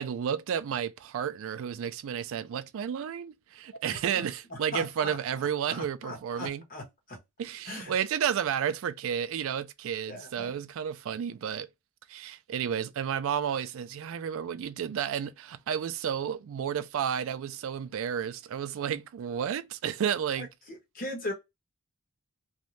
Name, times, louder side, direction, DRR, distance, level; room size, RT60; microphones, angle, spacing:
voice 1, 0.0-6.6 7.4-11.7 12.1-20.5, right 8 dB, 60° right, 0.3 m, -32 dB
voice 2, 4.7-5.2 5.7-7.2 7.7-7.9 10.1-10.5 20.4-20.5 20.9-21.3, left 1 dB, 40° left, 1.0 m, -38 dB
2.6 x 2.1 x 3.1 m
head